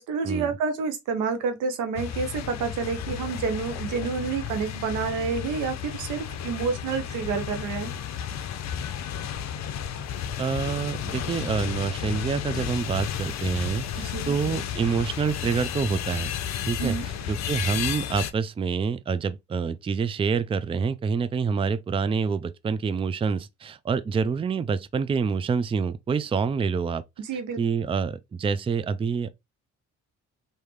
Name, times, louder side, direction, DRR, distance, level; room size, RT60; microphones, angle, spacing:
voice 1, 0.0-7.9 14.0-14.3 16.8-17.1 27.2-27.6, right 5 dB, 90° right, 0.9 m, -29 dB
sound 1, 2.0-18.3, left 9 dB, 60° left, 0.6 m, -32 dB
voice 2, 10.4-16.3 16.7-16.9 17.3-27.0 27.6-29.3, right 5 dB, 20° right, 0.3 m, -27 dB
3.5 x 2.7 x 3.2 m
cardioid pair, 90°, 30 cm